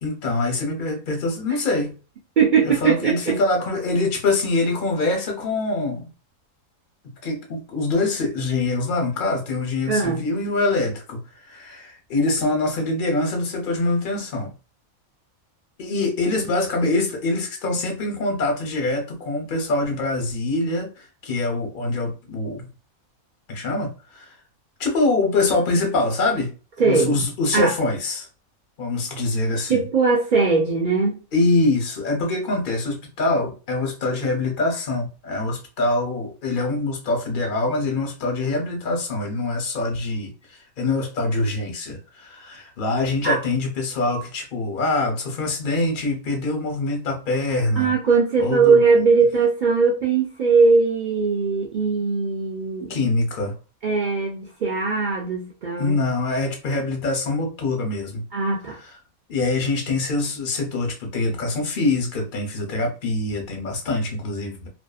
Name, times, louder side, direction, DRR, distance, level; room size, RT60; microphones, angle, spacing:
voice 1, 0.0-2.0 2.6-6.1 7.0-14.5 15.8-22.7 23.5-24.3 24.8-26.5 26.8-28.3 28.8-29.8 31.3-40.3 40.8-47.9 48.4-48.8 52.9-53.5 55.8-58.2 59.3-64.7, left 2 dB, 45° left, 2 dB, 0.7 m, -24 dB
voice 2, 2.4-3.3 9.9-10.2 26.8-27.3 27.5-27.7 29.7-31.2 43.2-43.4 47.8-53.1 53.8-55.9 58.3-58.8, right 4 dB, 75° right, -2 dB, 0.4 m, -20 dB
2.5 x 2.4 x 2.3 m, 0.34 s
omnidirectional pair, 1.5 m